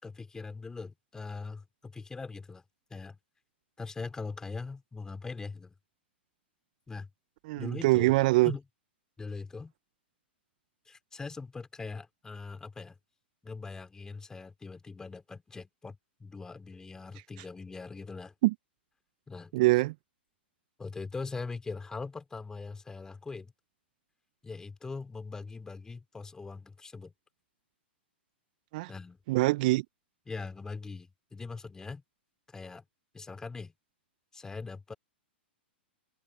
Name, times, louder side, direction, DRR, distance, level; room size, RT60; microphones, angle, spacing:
voice 1, 0.0-2.6 2.9-3.2 3.8-5.7 6.9-7.1 7.6-8.1 8.4-8.6 9.2-9.7 10.9-13.0 13.4-18.3 19.3-19.5 20.8-23.5 24.4-27.1 28.9-29.2 30.3-32.0 32.5-32.8 33.1-33.7 34.3-34.9, left 4 dB, 10° left, 4.1 m, -41 dB
voice 2, 7.5-8.5 18.4-18.5 19.5-19.9 28.7-28.9 29.3-29.8, right 21 dB, 50° right, 1.5 m, -24 dB
figure-of-eight pair, 105°, 6 cm